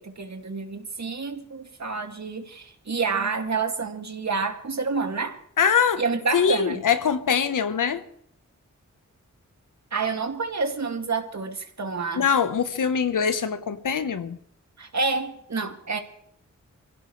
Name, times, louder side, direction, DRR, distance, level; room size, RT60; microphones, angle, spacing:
voice 1, 0.0-5.4 6.0-6.8 9.9-12.3 14.8-16.0, right 4 dB, 60° right, 2.4 m, -28 dB
voice 2, 5.6-6.0 6.3-8.0 12.2-14.4, left 7 dB, 90° left, 1.2 m, -23 dB
24.5 x 16.5 x 3.3 m
cardioid pair, 45°, 31 cm